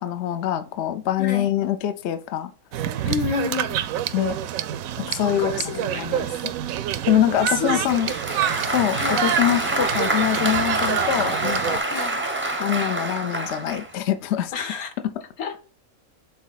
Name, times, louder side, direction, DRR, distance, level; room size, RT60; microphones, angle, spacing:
voice 1, 0.0-2.5 4.1-4.4 5.0-6.5 7.1-8.1 8.7-11.8 12.6-14.5, left 11 dB, 60° left, 0.8 m, -24 dB
voice 2, 1.2-1.5 3.0-3.8 5.1-6.4 7.4-8.0 8.9-9.3 11.9-12.2 14.5-14.9 15.1-15.6, left 6 dB, 80° left, 1.5 m, -30 dB
sound 1, 2.7-11.8, right 11 dB, 75° right, 0.9 m, -27 dB
Applause, 7.9-13.9, right 2 dB, 15° right, 0.5 m, -26 dB
6.3 x 4.0 x 4.0 m
omnidirectional pair, 1.5 m